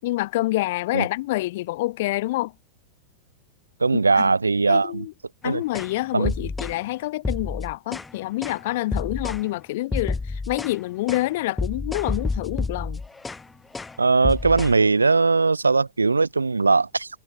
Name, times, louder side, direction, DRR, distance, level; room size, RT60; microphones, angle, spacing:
voice 1, 0.0-2.5 3.9-4.3 4.7-5.1 5.4-13.0, left 18 dB, 50° left, 6.8 m, -27 dB
voice 2, 3.8-5.0 5.4-5.6 6.1-6.3 14.0-17.1, right 4 dB, 80° right, 6.7 m, -20 dB
sound 1, 5.7-5.9 6.2-6.8 7.2-8.1 8.4-8.6 8.9-9.5 9.9-10.8 11.1-11.3 11.6-13.4 13.7-14.0 14.2-14.8, left 3 dB, 10° left, 7.6 m, -29 dB
figure-of-eight pair, 90°, 0 cm